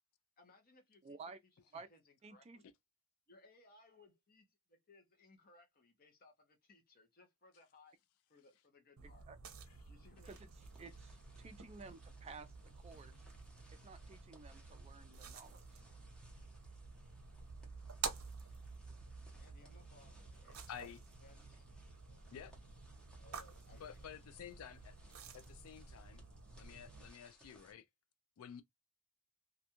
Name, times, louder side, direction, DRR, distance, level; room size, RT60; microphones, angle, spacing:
voice 1, 0.4-1.2 1.5-2.7 3.3-8.0 8.3-9.3 9.9-10.4 19.4-20.6 21.2-22.3 23.1-24.0, left 2 dB, 40° left, 0.8 m, -66 dB
voice 2, 1.0-1.4 1.7-1.9 2.2-2.6 9.3-9.4 10.2-10.5 10.8-13.2 13.8-15.6, right 4 dB, 30° right, 0.3 m, -54 dB
sound 1, 9.0-27.1, right 5 dB, 70° right, 0.6 m, -51 dB
sound 2, 10.1-27.7, equal, 5° left, 0.7 m, -67 dB
voice 3, 20.7-21.0 22.3-22.5 23.7-25.0 25.3-26.3 26.6-27.9 28.4-28.6, left 8 dB, 75° left, 0.3 m, -51 dB
2.5 x 2.3 x 2.8 m
head